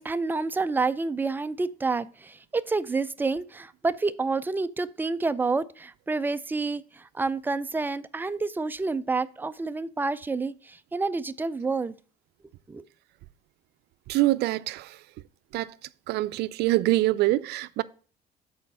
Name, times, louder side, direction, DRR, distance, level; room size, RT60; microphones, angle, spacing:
voice 1, 0.0-11.9 12.7-12.8, right 3 dB, 10° right, 0.4 m, -29 dB
voice 2, 14.1-15.0 15.5-15.7 16.1-17.8, right 17 dB, 75° right, 0.4 m, -25 dB
7.6 x 4.3 x 5.5 m
cardioid pair, 110°, 17 cm